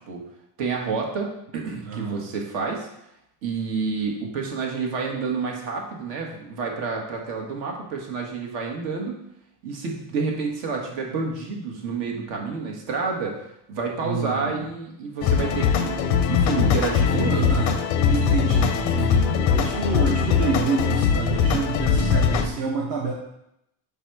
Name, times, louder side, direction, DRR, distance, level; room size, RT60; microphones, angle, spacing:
voice 1, 0.6-2.9 3.4-9.2 9.6-13.4 13.7-17.5 18.1-18.2, right 4 dB, 60° right, 0 dB, 1.5 m, -29 dB
voice 2, 1.8-2.2 14.0-14.7 17.1-23.1, right 5 dB, 40° right, -1 dB, 0.8 m, -28 dB
sound 1, 15.2-22.5, left 7 dB, 40° left, 0.5 m, -21 dB
5.1 x 4.1 x 4.5 m, 0.80 s
cardioid pair, 165°, 49 cm